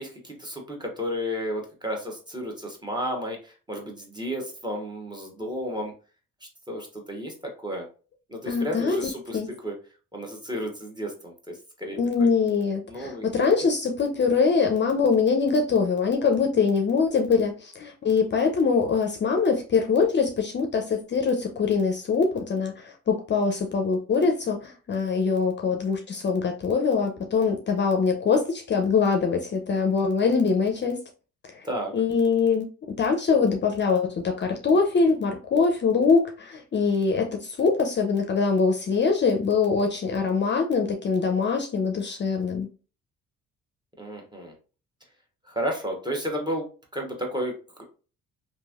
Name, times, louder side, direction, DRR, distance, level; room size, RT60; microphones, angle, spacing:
voice 1, 0.0-5.9 6.7-7.3 7.6-7.9 8.3-9.7 10.1-12.0 12.9-13.3 31.6-31.9 44.0-44.5 45.5-46.7 46.9-47.5 47.8-47.9, equal, 15° right, 1 dB, 1.0 m, -32 dB
voice 2, 8.5-9.5 12.0-31.0 31.5-31.7 31.9-32.7 33.0-42.7, left 5 dB, 35° left, 4 dB, 0.5 m, -23 dB
3.0 x 2.6 x 2.3 m, 0.36 s
cardioid pair, 90°, 30 cm